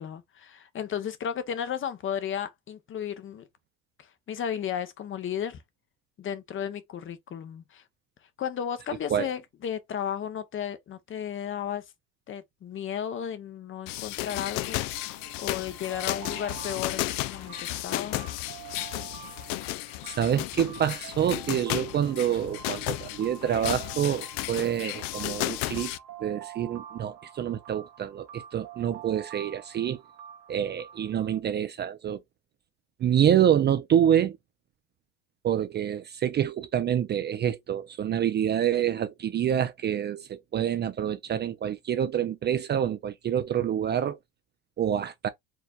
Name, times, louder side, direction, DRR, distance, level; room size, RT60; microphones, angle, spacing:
voice 1, 0.0-3.5 4.0-5.6 6.2-7.8 8.4-11.8 12.3-14.8 15.4-18.2, left 9 dB, 35° left, 0.8 m, -34 dB
sound 1, 13.9-26.0, left 17 dB, 70° left, 0.5 m, -34 dB
sound 2, 14.2-31.4, right 9 dB, 65° right, 1.5 m, -47 dB
voice 2, 20.1-25.9 26.2-30.0 30.5-32.2 33.0-34.4 35.4-44.2 44.8-45.3, right 9 dB, 30° right, 0.4 m, -27 dB
4.6 x 3.3 x 2.4 m
supercardioid pair, 100°, 36 cm